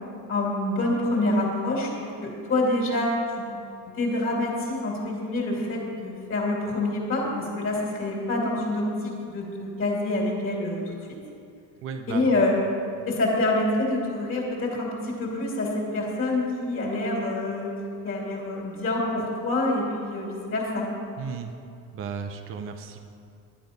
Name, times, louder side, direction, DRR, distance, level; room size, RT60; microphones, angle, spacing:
voice 1, 0.3-3.5 3.8-11.2 12.1-12.6 13.0-17.7 18.0-20.9, left 2 dB, 30° left, -2 dB, 2.5 m, -27 dB
voice 2, 11.8-12.3 21.2-21.5 21.9-23.1, right 6 dB, 30° right, 6 dB, 0.6 m, -34 dB
11.0 x 10.0 x 5.2 m, 2.5 s
cardioid pair, 160°, 41 cm